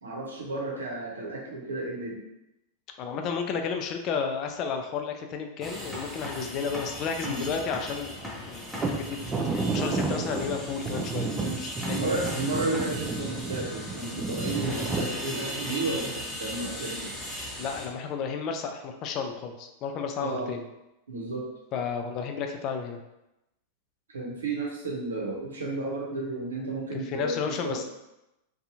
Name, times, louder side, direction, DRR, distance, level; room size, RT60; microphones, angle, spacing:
voice 1, 0.0-2.2 7.2-7.4 11.4-11.6 11.9-17.1 20.2-20.5 21.1-21.4 24.1-27.4 27.6-27.8, right 2 dB, 85° right, -3 dB, 0.8 m, -32 dB
voice 2, 3.0-8.1 8.4-9.2 9.5-12.2 17.6-20.6 21.7-23.0 27.1-27.8, left 6 dB, 45° left, 5 dB, 0.4 m, -32 dB
sound 1, 5.6-17.9, equal, ahead, 0.8 m, -37 dB
sound 2, 8.8-15.0, right 3 dB, 25° right, 0.4 m, -31 dB
2.7 x 2.3 x 2.7 m, 0.90 s
hypercardioid pair, 95°, 0 cm